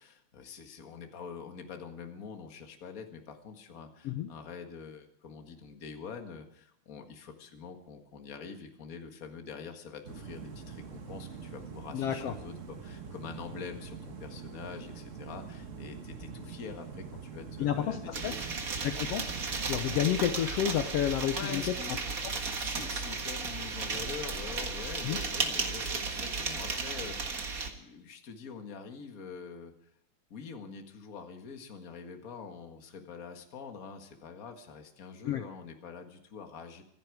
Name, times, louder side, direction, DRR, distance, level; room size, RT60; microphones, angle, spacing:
voice 1, 0.0-18.8 21.3-22.0 22.5-29.7 30.3-36.8, left 6 dB, 35° left, 5 dB, 1.7 m, -45 dB
sound 1, 10.0-20.1, right 5 dB, 55° right, 0.8 m, -44 dB
voice 2, 11.9-12.3 17.6-18.3 18.8-19.4 19.7-21.6 22.2-22.3 25.0-25.2 35.2-35.4, left 10 dB, 70° left, 7 dB, 1.7 m, -30 dB
sound 2, 18.1-27.7, right 4 dB, 35° right, 1.6 m, -34 dB
25.5 x 10.5 x 4.8 m, 0.75 s
omnidirectional pair, 3.3 m